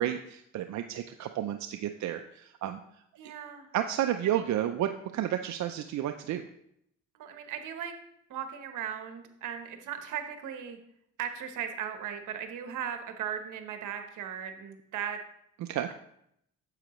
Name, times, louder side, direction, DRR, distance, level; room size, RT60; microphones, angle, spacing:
voice 1, 0.0-2.8 3.7-6.4 15.7-15.9, right 11 dB, 70° right, 7 dB, 0.5 m, -31 dB
voice 2, 3.2-3.7 4.2-4.4 7.1-7.9 8.3-10.8 11.2-15.2, right 8 dB, 85° right, 7 dB, 1.1 m, -37 dB
9.7 x 7.7 x 3.1 m, 0.74 s
cardioid pair, 90°, 30 cm